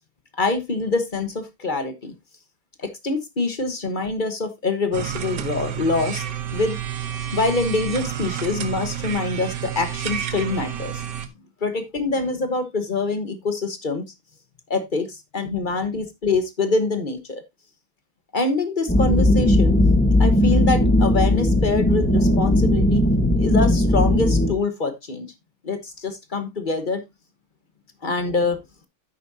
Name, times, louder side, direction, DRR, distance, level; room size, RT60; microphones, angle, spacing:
voice 1, 0.4-2.2 2.8-6.2 6.5-6.8 7.3-11.0 11.6-14.0 14.7-17.4 18.3-19.8 20.2-23.1 23.4-25.3 25.6-27.0 28.0-28.6, left 3 dB, 30° left, 8 dB, 0.9 m, -25 dB
sound 1, 4.9-11.3, right 10 dB, 60° right, 1.5 m, -30 dB
sound 2, 18.9-24.5, left 1 dB, 10° left, 0.6 m, -18 dB
10.5 x 8.4 x 2.7 m, 0.20 s
omnidirectional pair, 2.4 m